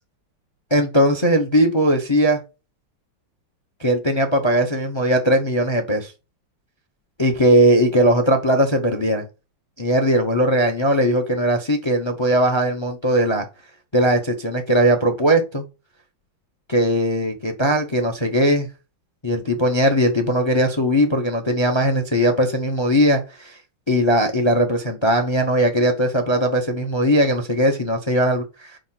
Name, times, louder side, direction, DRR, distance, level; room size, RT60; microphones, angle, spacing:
voice 1, 0.7-2.4 3.8-6.1 7.2-9.3 9.8-13.5 13.9-15.6 16.7-18.7 19.2-23.6 23.9-28.8, equal, 35° left, 0.4 m, -19 dB
5.1 x 5.0 x 5.8 m
omnidirectional pair, 2.2 m